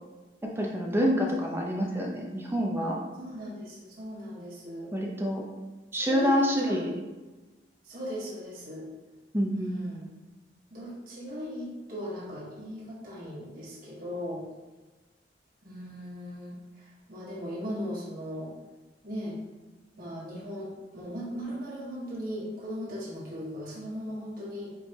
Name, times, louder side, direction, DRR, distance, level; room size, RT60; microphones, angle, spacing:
voice 1, 0.4-3.0 4.9-5.4 5.9-6.9 9.3-9.8, equal, 15° right, -1 dB, 0.6 m, -27 dB
voice 2, 3.2-4.9 5.9-6.8 7.8-8.9 9.5-10.0 10.7-14.4 15.6-18.5 19.0-19.4 20.0-24.7, equal, 50° right, -6 dB, 1.3 m, -38 dB
4.5 x 3.2 x 2.8 m, 1.2 s
head